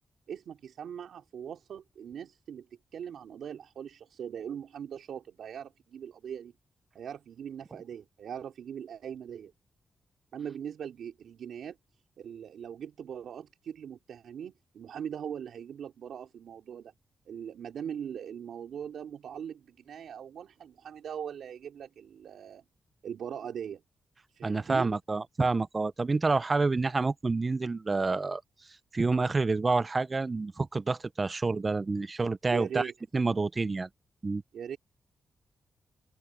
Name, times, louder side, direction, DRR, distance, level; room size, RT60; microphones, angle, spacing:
voice 1, 0.3-2.7 2.9-6.5 6.9-9.5 10.3-11.8 12.2-16.9 17.3-22.6 23.0-23.8 24.3-24.9 32.5-32.9 34.5-34.8, right 8 dB, 85° right, 3.3 m, -40 dB
voice 2, 24.4-28.4 28.9-33.9 34.2-34.4, right 3 dB, 35° right, 0.7 m, -28 dB
open air
cardioid pair, 65°, 0 cm